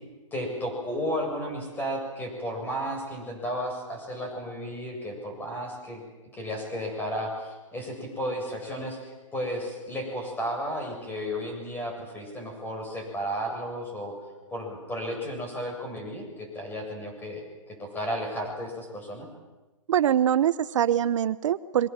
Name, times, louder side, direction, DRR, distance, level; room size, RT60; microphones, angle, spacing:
voice 1, 0.3-6.0 6.3-14.1 14.5-19.3, equal, 10° left, 2 dB, 7.8 m, -33 dB
voice 2, 19.9-21.9, right 10 dB, 65° right, 15 dB, 0.8 m, -23 dB
27.0 x 24.0 x 7.5 m, 1.2 s
hypercardioid pair, 150°, 17 cm